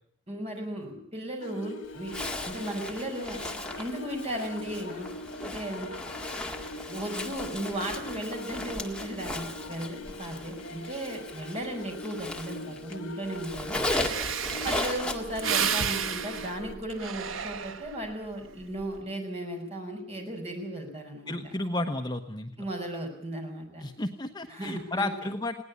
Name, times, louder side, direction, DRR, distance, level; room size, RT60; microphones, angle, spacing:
voice 1, 0.3-2.2 2.4-5.1 5.4-5.9 6.9-13.8 14.6-21.6 22.6-23.8 24.5-25.1, right 1 dB, 30° right, 2 dB, 5.8 m, -36 dB
sound 1, 1.4-16.8, left 2 dB, 70° left, 3.1 m, -43 dB
Zipper (clothing), 2.0-13.0 13.2-16.2, left 2 dB, 5° left, 1.8 m, -37 dB
Breathing, 13.6-13.7 13.9-18.1 18.6-19.0, right 7 dB, 80° right, 1.1 m, -32 dB
voice 2, 21.3-22.5 23.8-25.6, left 2 dB, 20° left, 6 dB, 1.1 m, -32 dB
20.5 x 18.0 x 8.5 m, 0.63 s
head